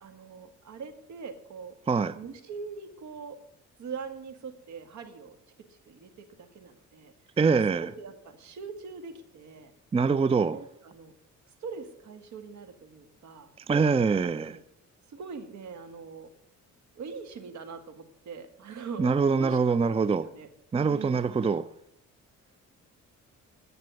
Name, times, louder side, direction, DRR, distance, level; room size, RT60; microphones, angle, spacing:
voice 1, 0.0-1.7 2.2-3.4 3.8-5.4 5.9-6.1 6.4-7.1 7.8-9.7 10.5-11.1 11.6-13.5 14.2-14.6 15.1-16.3 17.0-19.6 19.9-20.5 20.9-21.2, right 5 dB, 70° right, 1.9 m, -42 dB
voice 2, 1.9-2.2 7.4-7.9 9.9-10.6 13.7-14.6 19.0-20.3 20.7-21.7, right 5 dB, 20° right, 0.5 m, -24 dB
10.5 x 6.7 x 9.2 m
cardioid pair, 90°, 30 cm